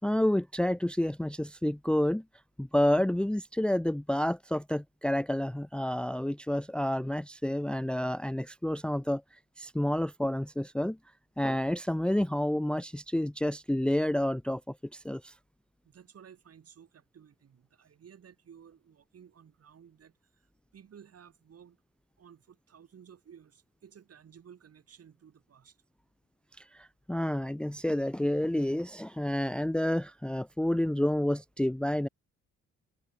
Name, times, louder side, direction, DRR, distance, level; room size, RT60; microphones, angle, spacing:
voice 1, 0.0-2.2 2.6-11.0 11.4-15.3 26.6-32.1, left 1 dB, 5° left, 0.7 m, -29 dB
voice 2, 15.8-20.1 20.7-21.8 22.2-25.8, right 8 dB, 55° right, 5.2 m, -55 dB
cardioid pair, 90°, 30 cm